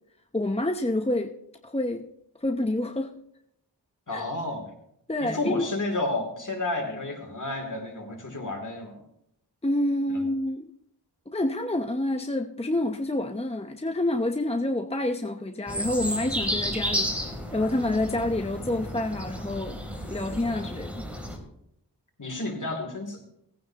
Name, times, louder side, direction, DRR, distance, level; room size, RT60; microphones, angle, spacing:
voice 1, 0.3-1.3 1.6-2.1 2.4-3.1 4.1-4.2 5.1-5.6 9.6-10.7 11.3-17.1 17.5-19.8 20.1-21.1, left 1 dB, 15° left, 4 dB, 0.8 m, -28 dB
voice 2, 4.1-4.7 5.2-9.0 20.5-20.6 22.2-23.2, left 2 dB, 45° left, 3 dB, 3.0 m, -31 dB
sound 1, 15.7-21.4, equal, 5° right, 3.2 m, -32 dB
19.0 x 9.4 x 2.9 m, 0.77 s
wide cardioid pair, 50°, 41 cm